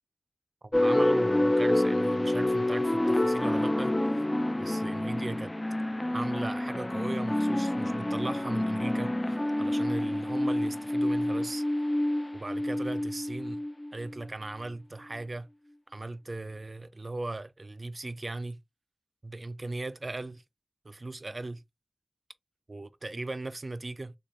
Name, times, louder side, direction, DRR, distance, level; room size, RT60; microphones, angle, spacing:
voice 1, 0.6-4.2 4.6-5.6 6.1-11.6 12.3-13.6 13.9-15.5 15.9-18.6 19.2-20.4 20.8-21.6 22.7-24.1, right 2 dB, 60° right, 0.3 m, -38 dB
sound 1, 0.7-14.1, left 1 dB, 30° left, 0.3 m, -28 dB
3.8 x 2.2 x 3.0 m
wide cardioid pair, 40°, 0 cm